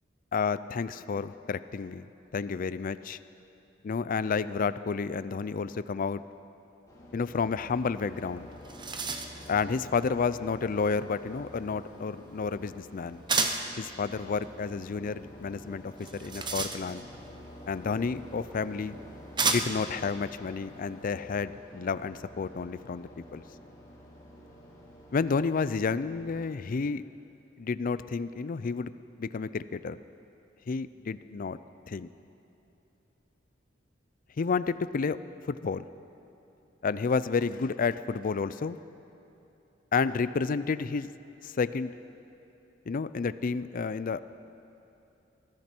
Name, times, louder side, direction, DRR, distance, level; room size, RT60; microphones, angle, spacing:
voice 1, 0.3-2.1 2.3-3.2 3.8-6.2 7.1-8.5 9.5-13.2 13.8-17.0 17.7-19.0 19.4-23.4 25.1-27.0 27.6-28.9 29.2-30.0 30.7-31.6 31.9-32.1 34.4-35.2 35.5-35.8 36.8-38.8 39.9-41.1 41.4-41.9 42.9-44.2, left 5 dB, 45° left, 14 dB, 0.4 m, -30 dB
sound 1, 6.9-26.5, equal, 20° left, 2.5 m, -49 dB
sound 2, 8.2-8.3 8.5-9.5 13.3-13.7 16.0-17.2 18.3-18.4 19.4-19.9, right 4 dB, 25° right, 0.8 m, -30 dB
20.5 x 13.5 x 4.5 m, 3.0 s
head